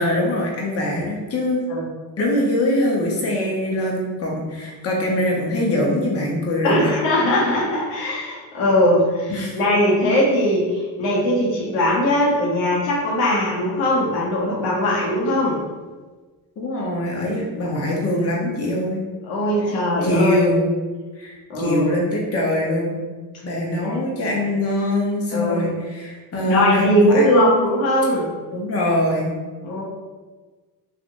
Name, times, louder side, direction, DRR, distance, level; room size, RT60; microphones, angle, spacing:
voice 1, 0.0-1.6 2.2-6.9 9.3-9.6 16.6-19.0 20.0-20.6 21.2-23.0 23.4-27.6 28.5-29.3, left 1 dB, 30° left, -2 dB, 0.8 m, -23 dB
voice 2, 6.6-15.6 19.3-20.5 21.5-21.9 23.8-24.0 25.3-25.7 26.4-28.3 29.6-29.8, left 1 dB, 85° left, -5 dB, 1.0 m, -20 dB
2.9 x 2.5 x 2.6 m, 1.3 s
supercardioid pair, 65°, 46 cm